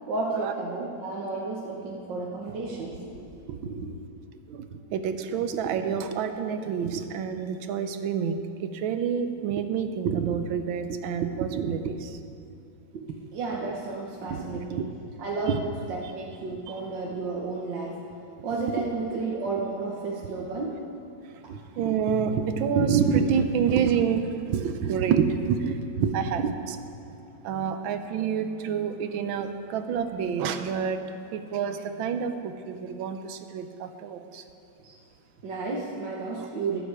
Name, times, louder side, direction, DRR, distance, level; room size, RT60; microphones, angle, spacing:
voice 1, 0.1-3.3 3.6-3.9 12.9-13.0 13.3-14.9 15.2-18.0 18.4-20.8 34.8-35.0 35.4-36.8, right 3 dB, 70° right, -3 dB, 1.9 m, -32 dB
voice 2, 4.5-12.2 14.3-14.6 15.5-15.6 19.1-19.2 21.5-26.8 27.4-31.0 31.3-34.4, right 7 dB, 85° right, 8 dB, 1.5 m, -27 dB
21.0 x 7.8 x 4.8 m, 2.6 s
omnidirectional pair, 2.1 m